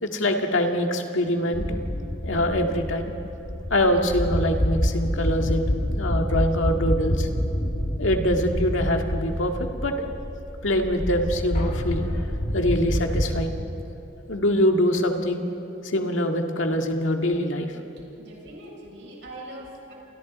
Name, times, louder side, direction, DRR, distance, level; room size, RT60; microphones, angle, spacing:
voice 1, 0.0-3.1 3.7-5.7 6.0-7.3 8.0-10.1 10.6-13.5 14.3-15.4 15.8-17.7, left 1 dB, 80° left, 3 dB, 2.0 m, -24 dB
sound 1, 1.5-13.4, equal, 40° left, 1.7 m, -27 dB
voice 2, 18.2-19.9, right 1 dB, 65° right, -3 dB, 7.2 m, -41 dB
29.5 x 28.0 x 4.2 m, 3.0 s
head